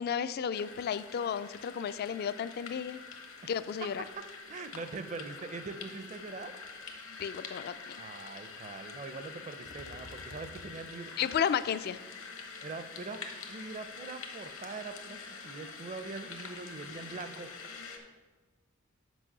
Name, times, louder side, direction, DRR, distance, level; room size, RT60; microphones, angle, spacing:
voice 1, 0.0-3.0 3.5-4.0 7.2-8.0 11.2-12.0, left 8 dB, 50° left, 14 dB, 0.3 m, -33 dB
sound 1, 0.5-18.0, left 5 dB, 75° left, 1.0 m, -46 dB
voice 2, 4.2-6.5 8.0-11.1 12.6-13.2 13.5-17.5, right 4 dB, 35° right, 10 dB, 0.5 m, -42 dB
sound 2, 6.2-6.3 6.6-6.9 7.2-7.3 9.7-10.7, left 2 dB, 90° left, 0.6 m, -50 dB
6.2 x 5.3 x 6.6 m, 1.3 s
head